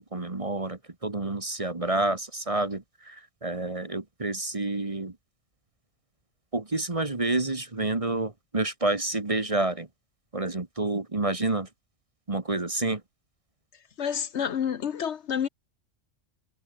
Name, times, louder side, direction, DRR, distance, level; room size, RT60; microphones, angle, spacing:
voice 1, 0.0-5.1 6.5-9.9 10.3-11.7 12.3-13.0, right 2 dB, 25° right, 1.5 m, -29 dB
voice 2, 14.0-15.5, left 8 dB, 60° left, 1.1 m, -29 dB
omnidirectional pair, 1.3 m